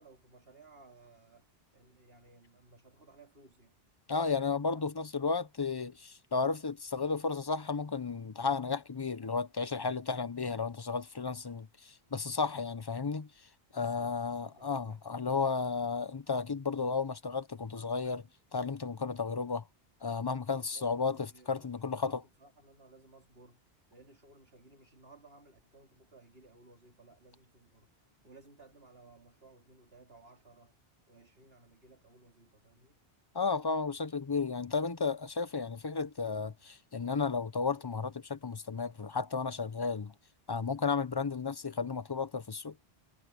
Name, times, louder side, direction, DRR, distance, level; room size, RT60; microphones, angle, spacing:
voice 1, 0.0-3.8 13.7-15.0 20.3-30.8 31.1-33.0, right 3 dB, 70° right, 3.5 m, -59 dB
voice 2, 4.1-13.3 13.7-19.6 20.0-22.2 33.3-40.1 40.5-42.8, left 4 dB, 25° left, 0.7 m, -33 dB
omnidirectional pair, 1.0 m